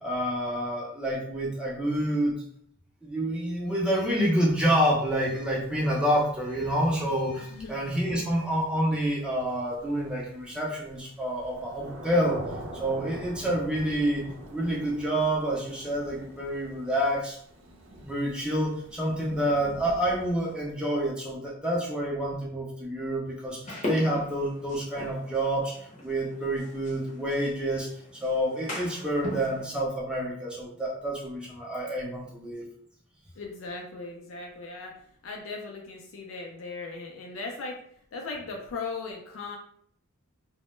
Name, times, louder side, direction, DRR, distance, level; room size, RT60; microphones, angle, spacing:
voice 1, 0.0-2.4 3.0-12.4 12.7-14.2 14.5-17.4 18.0-23.6 23.8-25.7 26.0-27.9 28.2-32.7, right 1 dB, 5° right, -4 dB, 0.5 m, -28 dB
Thunder / Rain, 5.1-20.5, right 1 dB, 65° right, 0.5 m, -45 dB
sound 1, 23.6-29.7, left 1 dB, 35° left, 0.6 m, -39 dB
voice 2, 33.4-37.8 38.1-39.6, left 3 dB, 70° left, 0 dB, 0.4 m, -38 dB
2.1 x 2.0 x 3.0 m, 0.64 s
head